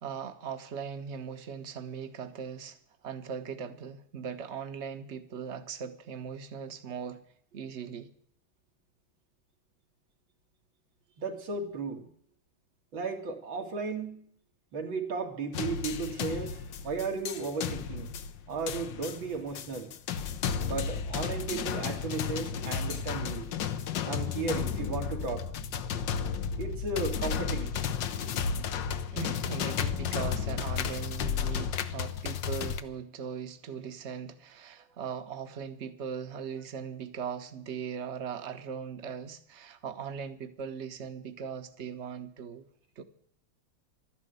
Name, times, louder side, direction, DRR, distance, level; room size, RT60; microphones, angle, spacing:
voice 1, 0.0-7.3 7.5-8.1 29.1-42.7 43.0-43.1, right 7 dB, 45° right, 1.2 m, -39 dB
voice 2, 11.2-12.1 12.9-14.3 14.7-18.1 18.5-19.9 20.6-23.5 24.0-25.5 26.5-27.7, right 4 dB, 85° right, 2.9 m, -35 dB
sound 1, 15.5-32.8, left 7 dB, 70° left, 1.5 m, -33 dB
12.5 x 11.0 x 8.0 m
omnidirectional pair, 2.1 m